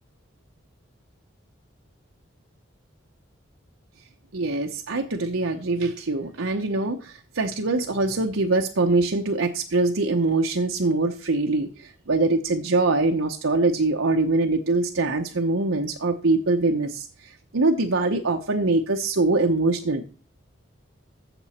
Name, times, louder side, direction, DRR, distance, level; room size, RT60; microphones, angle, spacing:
voice 1, 4.3-20.1, right 2 dB, 85° right, 3 dB, 1.0 m, -23 dB
15.0 x 6.2 x 4.3 m, 0.36 s
head